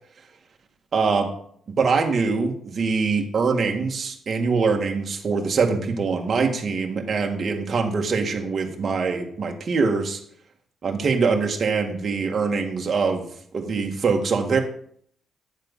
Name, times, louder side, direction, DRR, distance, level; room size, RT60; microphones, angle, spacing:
voice 1, 0.9-1.3 1.7-10.2 10.8-13.3 13.5-14.6, right 4 dB, 40° right, 2 dB, 1.9 m, -23 dB
10.5 x 7.5 x 5.5 m, 0.62 s
cardioid pair, 125°, 0 cm